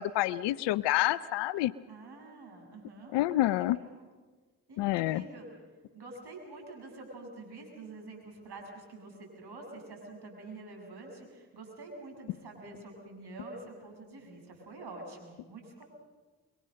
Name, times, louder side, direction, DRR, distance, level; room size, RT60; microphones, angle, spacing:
voice 1, 0.0-1.7 3.1-3.8 4.8-5.2, left 15 dB, 80° left, 19 dB, 0.6 m, -28 dB
voice 2, 1.9-3.2 3.5-4.1 4.7-5.5 5.9-15.9, right 2 dB, 65° right, 1 dB, 7.3 m, -47 dB
26.0 x 23.0 x 6.5 m, 1.3 s
hypercardioid pair, 45°, 42 cm